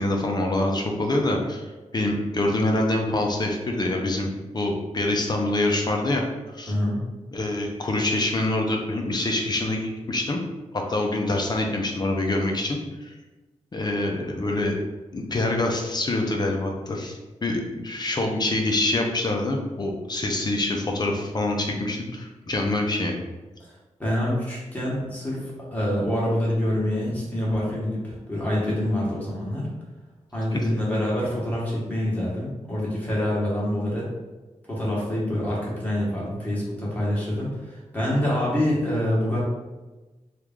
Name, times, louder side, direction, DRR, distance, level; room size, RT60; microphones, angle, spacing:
voice 1, 0.0-4.3 4.5-6.2 6.5-6.7 7.3-10.4 10.9-12.8 13.1-13.2 13.7-14.8 15.1-23.2 30.5-30.6, left 2 dB, 35° left, 2 dB, 0.5 m, -25 dB
voice 2, 6.7-7.0 23.6-23.7 24.0-29.7 30.3-34.1 34.7-39.4, left 1 dB, 10° left, -6 dB, 1.1 m, -26 dB
3.0 x 2.4 x 3.5 m, 1.2 s
wide cardioid pair, 130°, 13 cm